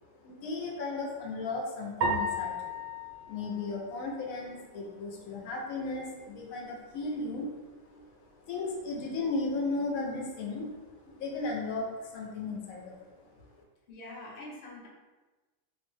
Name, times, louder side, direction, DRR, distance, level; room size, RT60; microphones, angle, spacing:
voice 1, 0.0-13.4, left 3 dB, 85° left, -1 dB, 1.0 m, -36 dB
sound 1, 2.0-4.5, equal, 75° right, 0.9 m, -34 dB
voice 2, 13.9-14.9, left 1 dB, 55° left, -4 dB, 0.9 m, -44 dB
2.6 x 2.1 x 3.1 m, 1.2 s
omnidirectional pair, 1.4 m